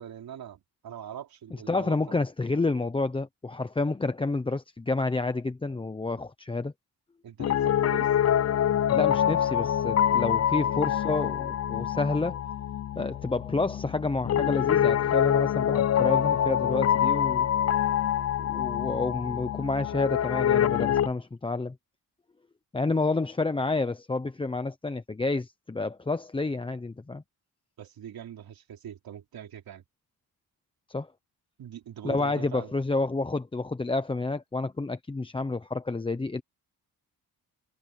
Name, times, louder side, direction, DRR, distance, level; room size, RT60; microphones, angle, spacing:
voice 1, 0.0-2.2 7.2-8.1 27.8-29.8 31.6-32.7, right 9 dB, 70° right, 3.7 m, -42 dB
voice 2, 1.7-6.7 8.9-12.4 12.9-17.5 18.4-21.7 22.7-27.2 30.9-31.1 32.0-36.4, left 3 dB, 15° left, 0.8 m, -29 dB
Piano, 7.4-21.1, left 10 dB, 45° left, 0.6 m, -25 dB
cardioid pair, 130°, 37 cm